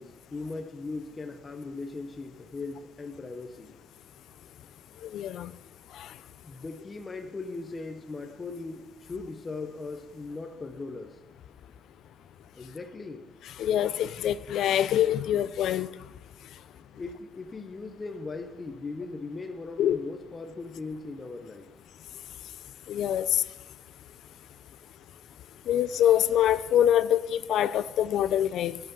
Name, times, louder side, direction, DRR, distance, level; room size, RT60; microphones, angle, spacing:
voice 1, 0.0-3.8 6.4-11.2 12.5-13.2 17.0-21.7, left 3 dB, 25° left, 0.7 m, -39 dB
voice 2, 5.0-5.5 6.0-6.1 13.6-15.9 19.8-20.0 22.9-23.4 25.7-28.8, left 11 dB, 75° left, 0.4 m, -25 dB
12.5 x 5.9 x 5.5 m
cardioid pair, 135°, 0 cm